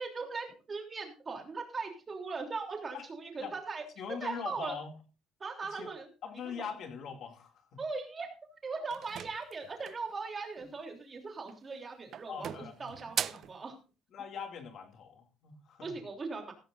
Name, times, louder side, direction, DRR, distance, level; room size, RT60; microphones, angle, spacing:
voice 1, 0.0-3.8 4.2-4.8 5.4-6.1 6.3-6.8 7.8-8.3 8.6-12.5 12.8-13.8 15.8-16.5, right 4 dB, 25° right, 3.3 m, -39 dB
voice 2, 4.0-4.9 5.7-5.9 6.2-7.8 12.3-12.9 13.3-13.5 14.1-16.0, left 6 dB, 50° left, 2.6 m, -42 dB
sound 1, 8.9-10.1 11.4-11.8 12.1-13.6, right 10 dB, 45° right, 0.5 m, -39 dB
16.0 x 14.5 x 2.6 m
cardioid pair, 165°, 0 cm